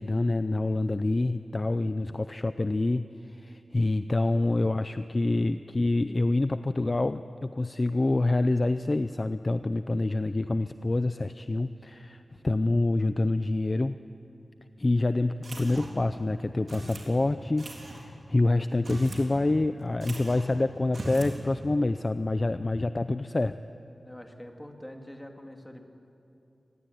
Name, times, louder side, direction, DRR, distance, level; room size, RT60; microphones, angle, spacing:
voice 1, 0.0-14.0 14.8-23.6, left 2 dB, 30° left, 11 dB, 0.5 m, -27 dB
sound 1, 15.4-16.1 16.7-17.1 17.6-18.0 18.7-19.3 19.5-19.6 20.0-20.5 20.9-21.4, right 1 dB, 60° right, 3.9 m, -38 dB
voice 2, 24.0-25.8, left 1 dB, 10° left, 3 dB, 2.5 m, -44 dB
25.0 x 19.0 x 9.4 m, 2.7 s
wide cardioid pair, 95°, 0 cm